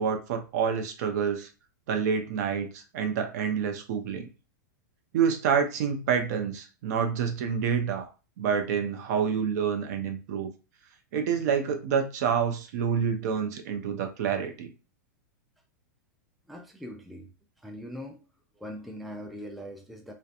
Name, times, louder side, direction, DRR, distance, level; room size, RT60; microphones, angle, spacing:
voice 1, 0.0-1.5 1.9-4.3 5.1-8.1 8.4-10.5 11.1-14.7, right 7 dB, 60° right, 6 dB, 0.5 m, -28 dB
voice 2, 16.5-17.3 17.6-18.2 18.5-20.1, equal, ahead, 2 dB, 0.3 m, -41 dB
2.7 x 2.1 x 2.4 m, 0.32 s
hypercardioid pair, 125°, 10 cm